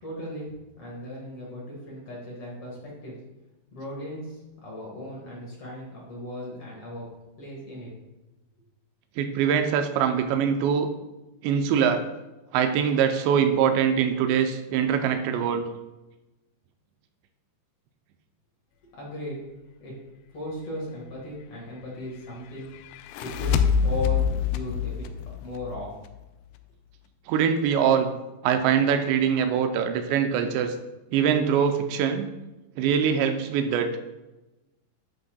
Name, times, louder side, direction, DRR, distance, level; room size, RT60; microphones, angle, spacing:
voice 1, 0.0-3.2 3.7-7.1 7.4-7.9 18.8-19.4 19.8-19.9 20.3-22.8 23.2-25.9, left 1 dB, 50° left, -4 dB, 1.8 m, -37 dB
voice 2, 9.2-10.9 11.4-12.0 12.5-15.7 27.3-28.1 28.4-30.7 31.1-32.3 32.8-33.9, right 7 dB, 90° right, 7 dB, 2.9 m, -23 dB
sound 1, 22.9-26.3, left 6 dB, 85° left, 2.4 m, -26 dB
11.0 x 7.6 x 2.3 m, 1.0 s
omnidirectional pair, 5.0 m